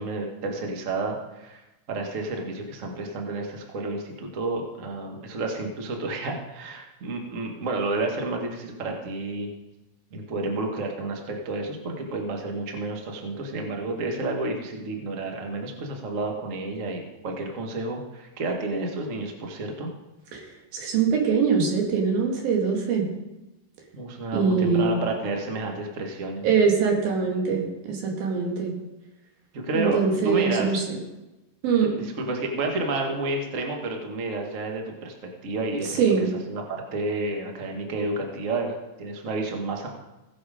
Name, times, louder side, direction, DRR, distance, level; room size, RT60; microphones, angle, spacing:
voice 1, 0.0-1.6 1.9-9.5 10.1-19.9 23.9-26.4 29.5-30.8 31.8-39.9, right 2 dB, 60° right, 2 dB, 0.7 m, -30 dB
voice 2, 20.7-23.1 24.3-25.0 26.4-28.7 29.7-30.8 31.6-31.9 36.0-36.3, right 5 dB, 85° right, 0 dB, 3.8 m, -23 dB
17.0 x 6.7 x 5.0 m, 1.0 s
omnidirectional pair, 4.1 m